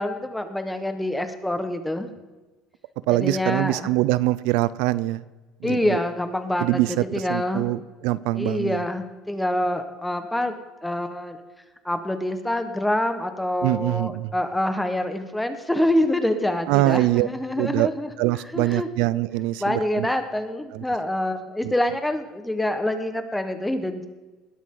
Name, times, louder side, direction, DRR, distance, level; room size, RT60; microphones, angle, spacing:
voice 1, 0.0-2.1 3.1-3.9 5.6-7.7 8.3-10.5 10.8-11.4 11.8-18.1 18.5-18.9 19.6-24.0, left 1 dB, 5° left, 7 dB, 1.3 m, -26 dB
voice 2, 3.1-5.2 5.6-6.0 6.6-8.8 13.6-14.3 16.7-17.3 17.6-17.9 18.2-20.1 20.7-20.8 21.6-21.7, right 17 dB, 85° right, 17 dB, 0.4 m, -23 dB
20.0 x 12.5 x 3.9 m, 1.2 s
cardioid pair, 120°, 0 cm